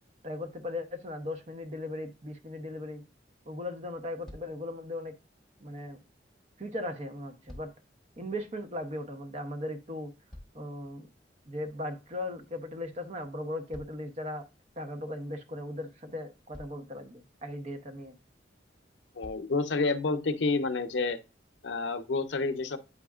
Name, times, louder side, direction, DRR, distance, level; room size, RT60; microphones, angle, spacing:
voice 1, 0.2-3.0 3.5-5.1 5.6-6.0 6.6-7.7 8.2-10.1 10.5-11.1 11.5-14.4 14.8-18.2, left 1 dB, 40° right, 0.8 m, -38 dB
sound 1, 4.2-4.7 7.1-8.0 9.8-10.9 13.7-14.7 15.9-16.0 16.5-17.0 18.4-18.5 19.2-19.6 20.4-20.5, left 1 dB, ahead, 1.5 m, -51 dB
voice 2, 19.2-21.2 21.6-22.8, left 3 dB, 80° left, 0.6 m, -29 dB
8.4 x 4.9 x 2.3 m
head